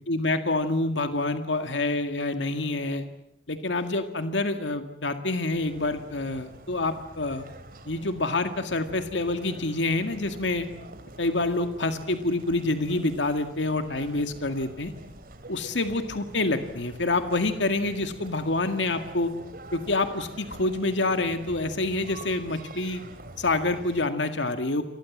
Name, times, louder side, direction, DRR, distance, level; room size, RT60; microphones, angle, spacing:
voice 1, 0.1-3.1 3.5-7.4 7.9-10.7 11.2-14.9 15.5-19.3 19.7-23.0 23.4-24.8, left 2 dB, 90° left, 8 dB, 2.0 m, -27 dB
sound 1, 5.5-24.1, right 1 dB, 55° right, 2.9 m, -46 dB
30.0 x 23.5 x 7.4 m, 0.77 s
head